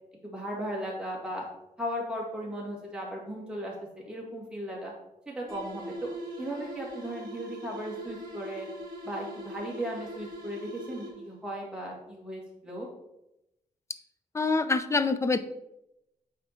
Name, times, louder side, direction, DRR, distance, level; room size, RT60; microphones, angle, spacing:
voice 1, 0.2-1.5 1.8-4.9 5.3-6.1 6.4-8.7 9.0-12.9, equal, 5° right, -3 dB, 2.0 m, -36 dB
sound 1, 5.5-11.4, equal, 25° right, 2.5 m, -42 dB
voice 2, 14.3-15.4, left 3 dB, 20° left, 11 dB, 0.4 m, -25 dB
8.9 x 3.6 x 4.4 m, 0.86 s
wide cardioid pair, 140°, 14 cm